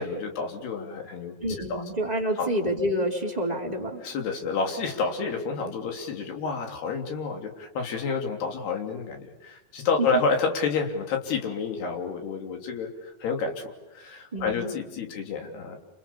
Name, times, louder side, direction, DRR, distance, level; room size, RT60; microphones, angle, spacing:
voice 1, 0.0-1.8 2.4-2.5 4.0-15.8, left 4 dB, 75° left, 3 dB, 5.2 m, -29 dB
voice 2, 1.4-4.0 14.3-14.7, equal, 10° right, 0 dB, 3.1 m, -28 dB
30.0 x 28.0 x 7.1 m, 1.0 s
omnidirectional pair, 4.7 m